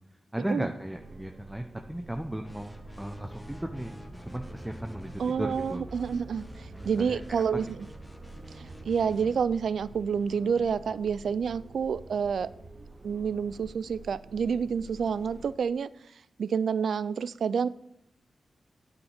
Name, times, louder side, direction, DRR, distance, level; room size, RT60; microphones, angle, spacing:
voice 1, 0.3-4.0 4.2-5.9 6.8-7.2 7.5-7.6, right 1 dB, 10° right, 5 dB, 0.7 m, -36 dB
sound 1, 0.9-15.5, right 3 dB, 50° right, 1.0 m, -48 dB
sound 2, 2.4-9.5, equal, 5° left, 1.3 m, -47 dB
voice 2, 5.2-7.7 8.6-12.5 13.0-15.9 16.4-17.7, right 6 dB, 80° right, 17 dB, 0.3 m, -28 dB
9.0 x 5.3 x 6.5 m, 0.77 s
cardioid pair, 65°, 0 cm